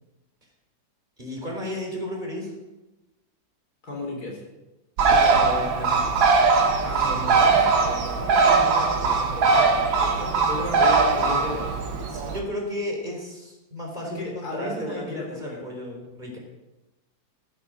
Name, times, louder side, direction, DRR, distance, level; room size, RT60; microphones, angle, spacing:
voice 1, 1.2-2.5 5.0-6.1 12.1-16.4, left 1 dB, 25° right, 0 dB, 4.2 m, -33 dB
voice 2, 3.8-4.4 6.8-11.8 14.0-15.7, left 1 dB, 50° left, -1 dB, 4.5 m, -34 dB
Bird, 5.0-12.4, right 4 dB, 85° right, 2.1 m, -20 dB
15.5 x 14.0 x 5.1 m, 1.0 s
omnidirectional pair, 2.1 m